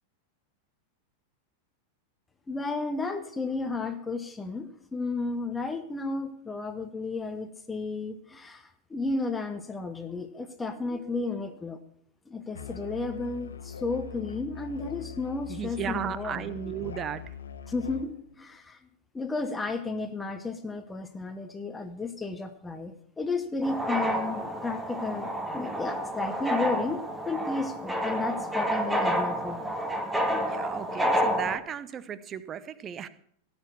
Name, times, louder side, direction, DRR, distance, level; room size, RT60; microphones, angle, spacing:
voice 1, 2.5-11.8 12.3-16.5 17.7-18.8 19.1-29.6, left 3 dB, 10° left, 7 dB, 1.1 m, -33 dB
Musical instrument, 12.5-18.1, left 8 dB, 65° left, 1.0 m, -42 dB
voice 2, 15.5-17.3 30.3-33.1, right 9 dB, 25° right, 16 dB, 0.8 m, -35 dB
sound 1, 23.6-31.6, equal, 5° right, 1.5 m, -29 dB
17.0 x 6.1 x 7.2 m, 0.63 s
figure-of-eight pair, 90°, 0 cm